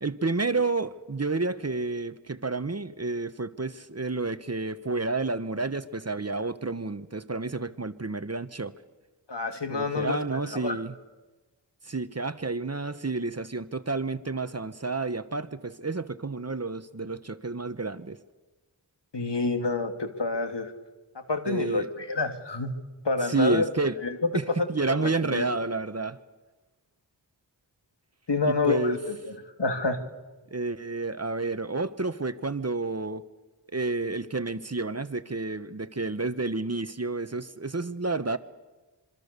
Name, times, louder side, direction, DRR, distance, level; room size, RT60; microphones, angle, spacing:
voice 1, 0.0-8.7 9.7-10.9 11.8-18.2 21.5-21.9 23.3-24.0 24.3-26.2 28.4-29.0 30.5-33.2 33.7-38.4, right 3 dB, 35° right, 13 dB, 1.1 m, -30 dB
voice 2, 9.3-10.8 19.1-20.7 21.3-22.7 23.0-23.7 24.0-24.3 24.6-24.7 25.0-25.4 28.3-30.0, left 3 dB, 65° left, 6 dB, 2.5 m, -28 dB
26.0 x 25.0 x 6.8 m, 1.2 s
wide cardioid pair, 40°, 44 cm